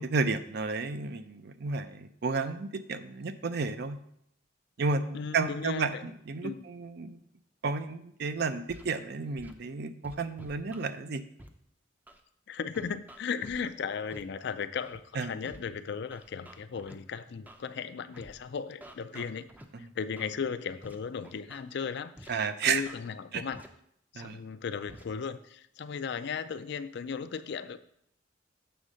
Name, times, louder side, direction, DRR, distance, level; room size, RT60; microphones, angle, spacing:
voice 1, 0.0-4.0 4.8-7.2 7.6-11.2 15.2-15.3 19.1-19.2 19.7-19.9 22.3-22.8 24.2-24.4, right 4 dB, 60° right, 11 dB, 0.5 m, -32 dB
voice 2, 5.1-6.1 6.4-6.6 12.5-19.5 19.8-23.6 24.1-27.8, left 6 dB, 60° left, 12 dB, 0.4 m, -36 dB
Scratching (performance technique), 8.7-8.9 9.4-9.5 10.0-10.9 11.4-11.5 12.1-12.2 12.7-13.6 14.1-14.2 14.8-15.0 15.4-15.6 16.1-16.9 17.5-17.6 18.1-18.3 18.8-19.6 20.2-20.3 20.8-20.9 21.2-21.6 22.2-22.3 22.8-22.9 23.5-23.7 24.2-24.3 24.9-25.0, right 1 dB, 10° right, 0.5 m, -49 dB
6.9 x 3.7 x 6.3 m, 0.72 s
head